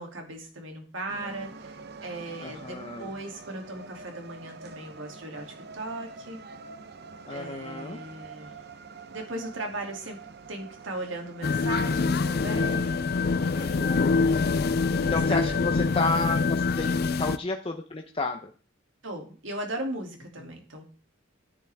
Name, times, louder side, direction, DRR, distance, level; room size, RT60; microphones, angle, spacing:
voice 1, 0.0-6.4 7.3-8.5 9.1-10.2 10.5-13.9 15.0-15.6 16.3-16.4 19.0-20.9, right 1 dB, 80° right, 2 dB, 2.7 m, -38 dB
sound 1, 1.1-16.4, right 4 dB, 55° right, 0.8 m, -46 dB
voice 2, 2.4-3.1 7.3-8.0 13.5-14.2 15.1-18.5, left 3 dB, 30° left, 3 dB, 0.7 m, -31 dB
sound 2, 11.4-17.4, left 4 dB, 50° left, 0.4 m, -25 dB
10.5 x 10.5 x 3.5 m, 0.38 s
head